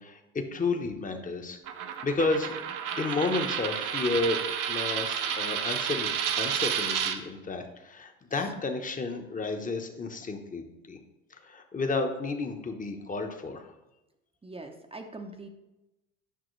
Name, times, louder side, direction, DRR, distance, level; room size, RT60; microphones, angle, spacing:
voice 1, 0.0-2.6 3.0-4.4 4.7-11.0 11.3-13.7, left 3 dB, 20° left, 5 dB, 1.1 m, -32 dB
Coin (dropping), 1.7-7.2, right 8 dB, 55° right, 0.9 m, -31 dB
voice 2, 14.4-15.5, right 2 dB, 15° right, 5 dB, 0.8 m, -42 dB
9.1 x 5.8 x 3.2 m, 0.97 s
hypercardioid pair, 70°, 38 cm